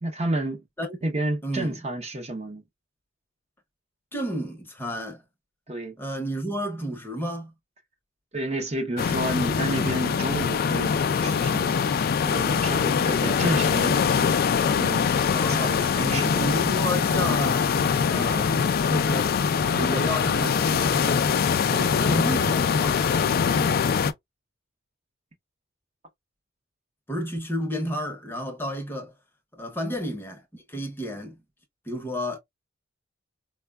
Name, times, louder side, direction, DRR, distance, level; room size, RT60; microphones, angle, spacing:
voice 1, 0.0-0.6 1.0-2.6 5.7-6.0 8.3-11.8 12.2-14.3 14.8-15.1 15.5-16.5 23.5-23.8, right 1 dB, 35° right, 0.7 m, -30 dB
voice 2, 1.4-1.8 4.1-5.2 6.0-7.5 15.3-19.3 19.7-21.3 21.7-23.0 27.1-29.1 29.5-31.3 31.9-32.4, equal, 10° left, 0.7 m, -31 dB
sound 1, 9.0-24.1, left 6 dB, 50° left, 0.3 m, -23 dB
4.3 x 2.1 x 2.2 m
head